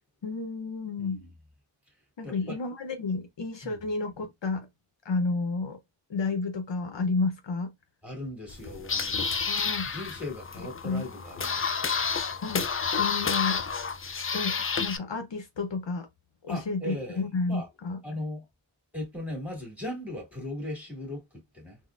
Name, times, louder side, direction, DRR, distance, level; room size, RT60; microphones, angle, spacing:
voice 1, 0.2-1.2 2.2-4.7 5.0-5.8 6.1-7.7 9.5-9.9 10.8-11.1 12.4-12.7 13.0-13.7 14.3-16.1 16.4-18.0, left 3 dB, 60° left, 0.7 m, -31 dB
voice 2, 1.0-1.3 2.2-2.6 3.6-3.8 8.0-9.3 9.8-12.1 16.5-17.7 18.0-18.5 18.9-21.8, left 1 dB, 5° right, 1.7 m, -38 dB
sound 1, 8.5-15.0, left 5 dB, 30° left, 0.4 m, -30 dB
3.9 x 2.0 x 2.4 m
wide cardioid pair, 65°, 50 cm